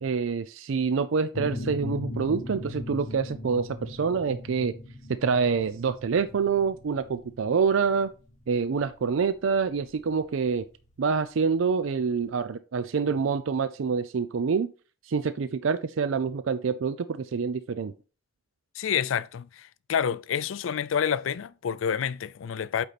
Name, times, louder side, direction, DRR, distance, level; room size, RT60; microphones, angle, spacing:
voice 1, 0.0-4.7 5.2-8.1 8.5-10.6 11.0-14.7 15.1-17.9, right 5 dB, 90° right, 0.4 m, -26 dB
sound 1, 1.3-10.7, left 1 dB, 40° left, 1.5 m, -38 dB
voice 2, 18.7-22.8, left 8 dB, 90° left, 0.4 m, -28 dB
8.3 x 4.4 x 4.1 m
head